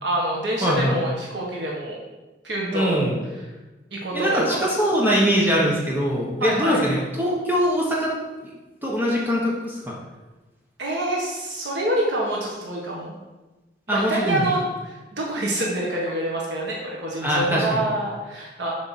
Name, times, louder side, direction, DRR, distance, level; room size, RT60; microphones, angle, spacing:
voice 1, 0.0-2.0 2.4-2.9 3.9-4.6 6.4-6.8 10.8-13.1 13.9-18.7, right 1 dB, 80° right, -3 dB, 1.6 m, -26 dB
voice 2, 0.6-1.0 2.7-3.2 4.1-8.1 8.4-8.5 8.8-10.0 13.9-14.4 17.2-17.8, equal, 10° right, -4 dB, 1.1 m, -22 dB
6.7 x 5.0 x 5.9 m, 1.1 s
head